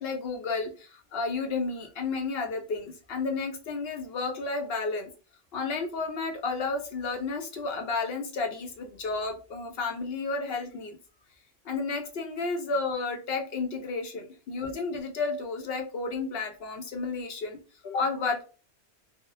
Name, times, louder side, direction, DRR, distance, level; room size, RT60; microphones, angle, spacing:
voice 1, 0.0-5.1 5.5-11.0 11.6-17.6 17.8-18.4, left 4 dB, 60° left, 4 dB, 0.8 m, -32 dB
3.4 x 2.0 x 2.6 m, 0.36 s
omnidirectional pair, 1.3 m